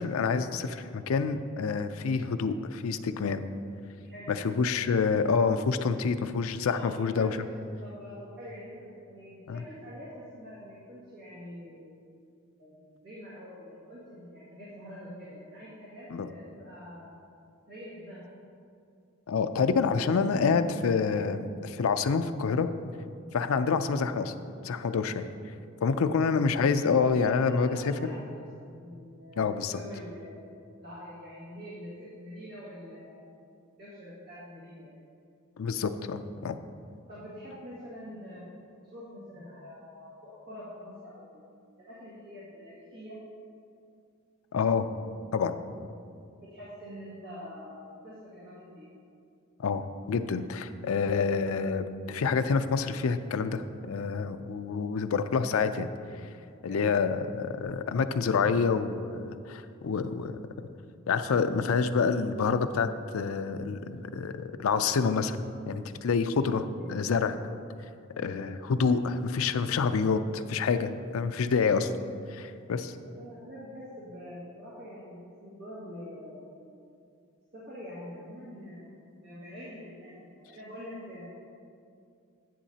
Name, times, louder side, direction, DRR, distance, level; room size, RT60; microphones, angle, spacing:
voice 1, 0.0-3.4 4.3-7.4 9.5-9.6 16.1-16.3 19.3-22.7 23.3-24.3 24.6-25.2 25.8-27.9 29.4-29.7 35.6-36.6 44.5-44.9 45.3-45.5 49.6-55.9 56.6-60.3 61.1-65.4 65.7-67.4 68.2-71.9 72.3-72.9, left 5 dB, 70° left, 9 dB, 0.4 m, -27 dB
voice 2, 6.6-7.4 7.8-11.9 12.6-12.8 13.0-17.1 17.7-18.2 27.2-28.2 28.5-30.4 30.8-33.2 33.8-35.0 37.1-38.4 38.9-41.5 41.8-43.2 46.4-48.9 56.7-56.9 66.8-66.9 73.0-76.5 77.5-81.3, equal, 50° right, -9 dB, 2.0 m, -45 dB
10.0 x 8.5 x 2.8 m, 2.4 s
head